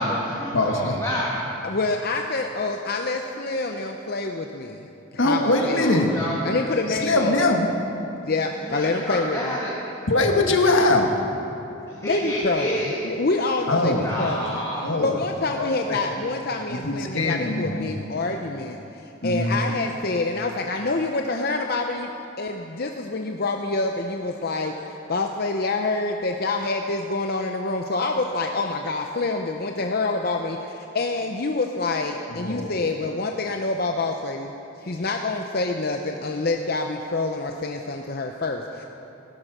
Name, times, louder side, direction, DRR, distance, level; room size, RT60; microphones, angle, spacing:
voice 1, 0.0-1.4 5.5-6.5 8.7-9.8 12.0-13.0 14.0-14.9, equal, 15° left, -6 dB, 2.0 m, -29 dB
voice 2, 0.5-1.0 5.2-6.1 7.0-7.7 10.1-11.1 13.7-14.1 14.8-15.1 15.6-16.0 16.7-17.9 19.2-19.6 32.3-32.7, left 2 dB, 75° left, 2 dB, 1.7 m, -22 dB
voice 3, 1.6-5.9 6.4-7.5 8.2-9.6 12.0-14.6 15.0-22.1 22.4-34.5 34.8-38.8, left 3 dB, 50° left, 3 dB, 0.7 m, -27 dB
18.5 x 11.5 x 6.2 m, 2.9 s
head